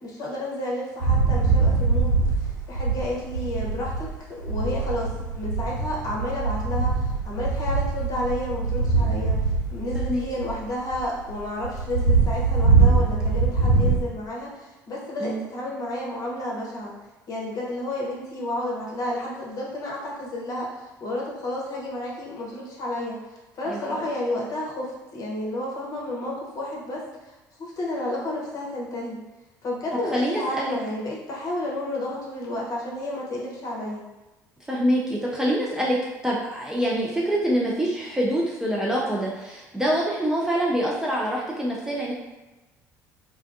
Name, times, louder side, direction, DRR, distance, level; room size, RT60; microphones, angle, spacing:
voice 1, 0.0-2.2 2.7-9.4 9.7-16.9 17.3-20.7 21.0-23.2 23.5-27.0 27.6-29.2 29.6-34.0, left 1 dB, 40° left, -4 dB, 0.8 m, -31 dB
sound 1, 1.0-4.1 4.4-14.0, right 4 dB, 80° left, 0.5 m, -23 dB
voice 2, 9.9-10.3 15.2-15.4 23.7-23.8 30.1-30.8 34.7-36.0 36.2-42.1, equal, 5° right, -5 dB, 0.4 m, -25 dB
2.4 x 2.2 x 2.4 m, 1.1 s
figure-of-eight pair, 55°, 10 cm